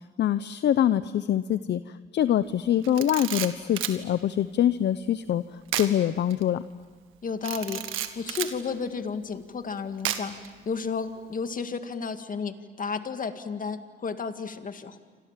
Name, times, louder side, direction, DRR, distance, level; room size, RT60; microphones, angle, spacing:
voice 1, 0.2-1.8 2.1-5.4 5.7-6.6, left 10 dB, 60° left, 14 dB, 0.7 m, -24 dB
Camera, 2.8-4.0 5.7-5.9 6.3-6.4 7.4-8.6 10.0-10.5, right 11 dB, 90° right, 1.8 m, -31 dB
voice 2, 7.2-7.9 8.2-10.3 10.7-15.0, left 5 dB, 45° left, 8 dB, 2.1 m, -32 dB
29.0 x 25.5 x 7.5 m, 1.5 s
cardioid pair, 90°, 20 cm